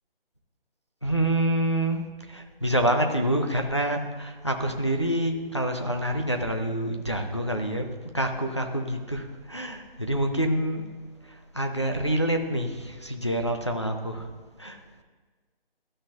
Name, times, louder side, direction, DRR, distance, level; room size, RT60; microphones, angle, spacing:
voice 1, 1.0-10.9 11.2-14.3 14.6-14.8, right 1 dB, 30° left, 3 dB, 0.5 m, -27 dB
13.0 x 5.8 x 2.4 m, 1.3 s
figure-of-eight pair, 175°, 30 cm